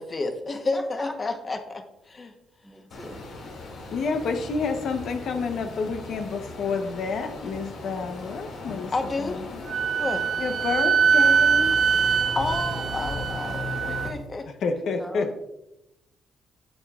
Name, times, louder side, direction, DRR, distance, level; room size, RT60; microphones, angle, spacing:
voice 1, 0.0-1.8 2.1-2.3 8.9-9.4 10.0-10.3 12.3-14.5, left 3 dB, 30° left, 6 dB, 1.0 m, -30 dB
voice 2, 0.7-1.4 2.6-3.2 15.0-15.3, equal, ahead, 3 dB, 1.0 m, -40 dB
sound 1, 2.9-14.1, left 1 dB, 85° left, 2.5 m, -37 dB
voice 3, 3.9-8.9 9.2-9.7 10.4-11.7 14.5-15.3, left 4 dB, 65° left, 6 dB, 0.8 m, -29 dB
Wind instrument woodwind instrument, 9.7-14.1, right 6 dB, 50° right, 0.3 m, -23 dB
10.5 x 8.1 x 2.4 m, 0.90 s
cardioid pair, 125°, 0 cm